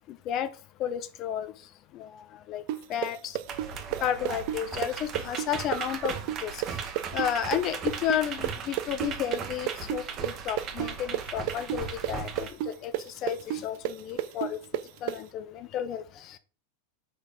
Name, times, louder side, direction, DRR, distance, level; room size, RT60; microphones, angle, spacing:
voice 1, 0.1-0.5 0.8-1.5 1.9-2.6 2.9-3.4 4.0-6.8 7.1-14.6 15.0-16.4, left 10 dB, 35° left, 14 dB, 0.4 m, -32 dB
sound 1, 2.7-10.3 10.6-15.2, right 13 dB, 45° right, 0.4 m, -31 dB
sound 2, 3.5-12.5, right 6 dB, 30° right, 1.0 m, -37 dB
5.6 x 3.6 x 5.2 m, 0.37 s
figure-of-eight pair, 90°, 0 cm